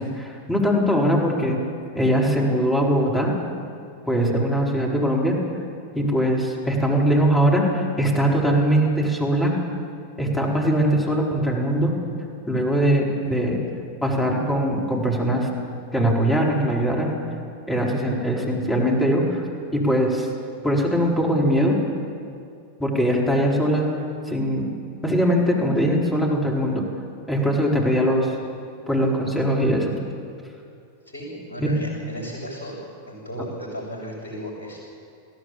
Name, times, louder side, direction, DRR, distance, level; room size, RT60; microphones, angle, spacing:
voice 1, 0.0-1.6 1.9-3.3 4.1-5.4 5.9-9.5 10.2-11.9 12.5-13.6 14.0-15.5 15.9-17.1 17.7-19.4 19.7-20.3 20.6-21.8 22.8-23.9 24.3-24.7 25.0-26.8 27.3-28.3 28.9-30.0 31.6-31.7, equal, 10° left, -2 dB, 4.4 m, -21 dB
voice 2, 31.0-32.8 33.1-34.8, equal, 70° left, -6 dB, 7.2 m, -35 dB
21.5 x 16.0 x 8.7 m, 2.5 s
figure-of-eight pair, 90°, 0 cm